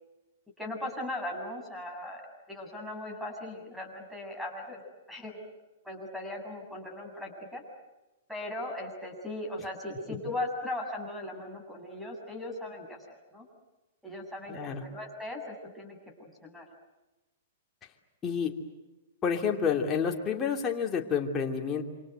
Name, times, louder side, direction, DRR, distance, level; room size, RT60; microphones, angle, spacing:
voice 1, 0.6-2.2 2.5-4.8 5.1-5.4 5.8-7.6 8.3-13.5 14.0-16.7, left 1 dB, ahead, 3 dB, 7.4 m, -38 dB
voice 2, 14.5-14.8 18.2-18.5 19.2-21.8, left 6 dB, 25° left, 0 dB, 2.9 m, -29 dB
28.0 x 26.0 x 8.1 m, 1.1 s
hypercardioid pair, 115°, 0 cm